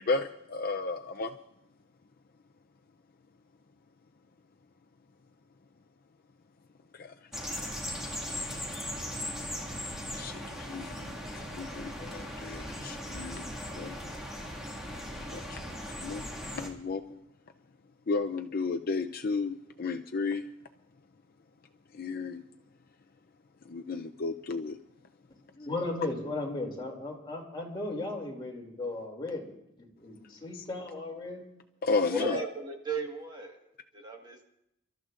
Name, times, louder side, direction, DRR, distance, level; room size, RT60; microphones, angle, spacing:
voice 1, 0.0-1.3 6.9-7.1 10.2-11.2 11.5-14.0 15.2-17.2 18.1-20.4 21.9-22.4 23.7-24.8 30.5-30.6 31.8-32.4, left 4 dB, 50° left, 6 dB, 0.5 m, -33 dB
sound 1, 7.3-16.7, equal, ahead, 2.0 m, -38 dB
voice 2, 25.6-29.5 29.8-31.5, left 2 dB, 25° left, -1 dB, 2.6 m, -36 dB
voice 3, 32.1-33.6 33.9-34.4, right 1 dB, 25° right, 2 dB, 1.6 m, -34 dB
30.0 x 13.0 x 2.5 m, 0.80 s
head